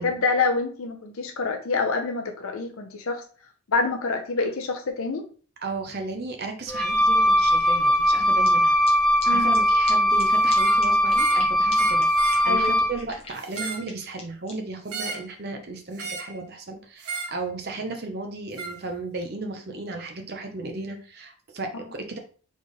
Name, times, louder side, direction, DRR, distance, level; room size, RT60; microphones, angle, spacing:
voice 1, 0.0-3.2 3.7-5.2 9.3-9.5 12.4-12.8, left 4 dB, 70° left, 4 dB, 0.6 m, -26 dB
voice 2, 5.6-8.8 9.3-22.2, right 3 dB, 45° right, 4 dB, 0.8 m, -35 dB
Wind instrument woodwind instrument, 6.7-13.0, equal, ahead, 0.8 m, -20 dB
sound 1, 8.4-8.5 8.8-8.9 9.2-9.3 9.5-9.6 9.8-9.9 10.2-10.3 10.5-10.6 10.8-11.4 11.7-11.8 12.0-12.1 12.3-14.5, left 4 dB, 25° left, 1.2 m, -39 dB
sound 2, 10.5-10.8 11.1-11.5 11.7-12.4 13.4-13.9 14.9-15.3 16.0-16.3 17.0-17.4 18.6-18.8, right 4 dB, 85° right, 1.2 m, -33 dB
4.3 x 3.6 x 3.1 m, 0.40 s
head